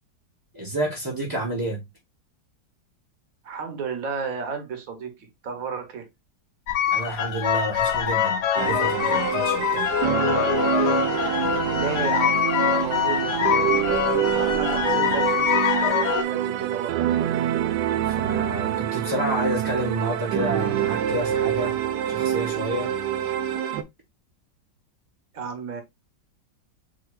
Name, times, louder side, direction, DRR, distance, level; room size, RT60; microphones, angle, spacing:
voice 1, 0.5-1.8 6.9-10.0 18.0-23.0, right 1 dB, 15° right, 0.8 m, -30 dB
voice 2, 3.4-6.1 11.7-13.9 14.3-17.2 25.3-25.8, right 5 dB, 55° right, 1.4 m, -33 dB
sound 1, 6.7-16.2, left 9 dB, 70° left, 1.4 m, -24 dB
sound 2, 8.6-23.8, right 10 dB, 80° right, 1.3 m, -26 dB
7.6 x 3.0 x 2.3 m
omnidirectional pair, 1.9 m